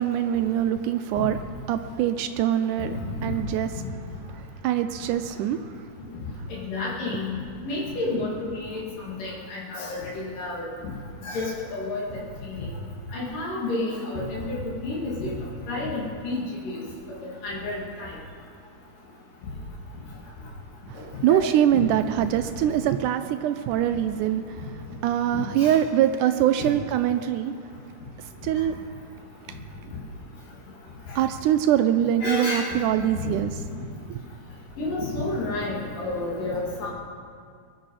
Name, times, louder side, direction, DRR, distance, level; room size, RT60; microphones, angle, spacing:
voice 1, 0.0-1.4 1.7-3.7 4.6-5.6 20.9-24.6 25.0-27.5 28.4-28.7 29.5-29.6 31.2-33.5 34.1-34.2, right 11 dB, 80° right, 9 dB, 2.0 m, -23 dB
voice 2, 3.1-3.4 3.8-3.9 6.5-7.4 7.6-8.8 9.2-10.6 11.2-12.2 12.5-12.7 13.1-15.3 15.7-16.8 17.4-18.1 20.9-21.4 25.3-25.7 26.6-26.7 32.2-32.8 33.2-33.3 34.8-36.9, left 2 dB, 85° left, -5 dB, 4.2 m, -30 dB
23.0 x 11.0 x 4.9 m, 2.2 s
omnidirectional pair, 3.7 m